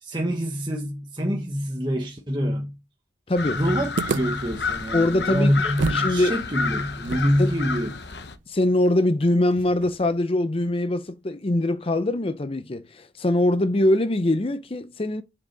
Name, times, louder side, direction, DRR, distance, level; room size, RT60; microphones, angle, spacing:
voice 1, 0.0-2.7 3.5-8.0, equal, 25° right, 1.1 m, -26 dB
voice 2, 3.3-3.6 4.9-6.3 7.4-7.5 8.5-15.2, left 1 dB, 30° left, 0.6 m, -23 dB
sound 1, 3.4-8.3, left 5 dB, 65° left, 0.9 m, -30 dB
sound 2, 4.0-6.1 6.4-6.5 7.0-10.2, right 4 dB, 85° right, 0.5 m, -33 dB
7.1 x 6.6 x 5.2 m
head